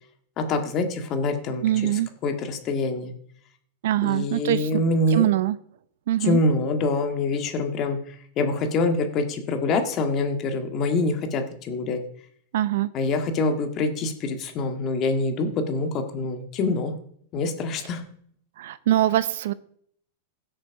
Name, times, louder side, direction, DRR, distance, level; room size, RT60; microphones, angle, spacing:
voice 1, 0.4-3.1 4.0-5.3 6.2-8.0 8.4-12.0 12.9-16.9 17.3-18.0, left 3 dB, 35° left, 6 dB, 1.8 m, -25 dB
voice 2, 1.6-2.1 3.8-4.8 5.1-5.6 6.1-6.4 12.5-12.9 18.6-19.5, right 13 dB, 70° right, 16 dB, 0.7 m, -23 dB
16.0 x 6.6 x 4.7 m, 0.65 s
supercardioid pair, 145°, 0 cm